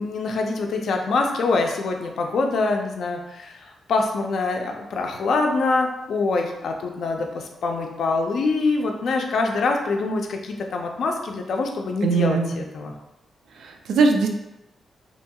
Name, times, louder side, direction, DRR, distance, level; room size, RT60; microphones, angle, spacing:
voice 1, 0.0-12.9, left 3 dB, 60° left, 3 dB, 0.4 m, -25 dB
voice 2, 12.0-12.5 13.6-14.3, right 4 dB, 90° right, 3 dB, 0.4 m, -20 dB
2.8 x 2.3 x 2.7 m, 0.92 s
wide cardioid pair, 170°, 0 cm